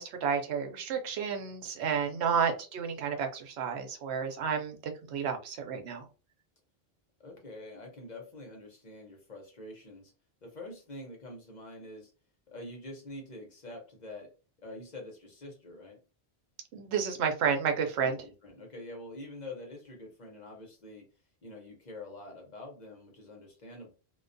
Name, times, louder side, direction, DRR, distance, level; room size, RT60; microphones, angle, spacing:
voice 1, 0.0-6.1 16.7-18.2, right 7 dB, 90° right, 5 dB, 0.9 m, -31 dB
voice 2, 1.9-2.3 7.2-10.1 10.4-12.1 12.5-14.3 14.6-16.0 18.0-21.1 21.4-23.9, left 2 dB, 50° left, 1 dB, 0.8 m, -46 dB
2.3 x 2.2 x 2.5 m, 0.34 s
omnidirectional pair, 1.1 m